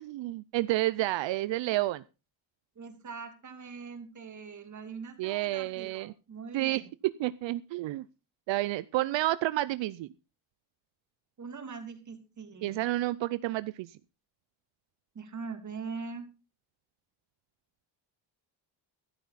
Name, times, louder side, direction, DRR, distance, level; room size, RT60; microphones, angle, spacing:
voice 1, 0.0-2.0 5.2-6.1 6.5-8.1 8.5-10.1 12.6-14.0, right 16 dB, 70° right, 16 dB, 0.6 m, -30 dB
voice 2, 2.8-6.9 11.4-12.8 15.1-16.3, right 5 dB, 40° right, 6 dB, 2.9 m, -42 dB
14.0 x 12.0 x 4.1 m, 0.30 s
cardioid pair, 140°, 46 cm